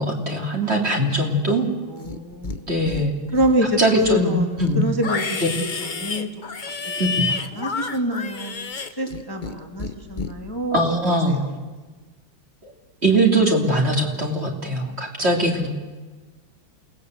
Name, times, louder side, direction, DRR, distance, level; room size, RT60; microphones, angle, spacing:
voice 1, 0.0-1.7 2.7-3.1 3.8-4.9 5.4-5.5 7.0-7.3 10.7-11.4 12.6-12.7 13.0-15.7, right 1 dB, 30° right, 1 dB, 3.2 m, -21 dB
voice 2, 1.9-2.7 3.3-6.3 7.0-7.1 7.5-11.5 15.2-15.4, equal, 10° left, 2 dB, 2.2 m, -26 dB
Livestock farm animals working animals, 2.0-2.6 2.9-3.6 3.9-9.5 9.8-10.3, left 4 dB, 35° left, 0.9 m, -30 dB
28.5 x 19.0 x 8.1 m, 1.3 s
omnidirectional pair, 2.3 m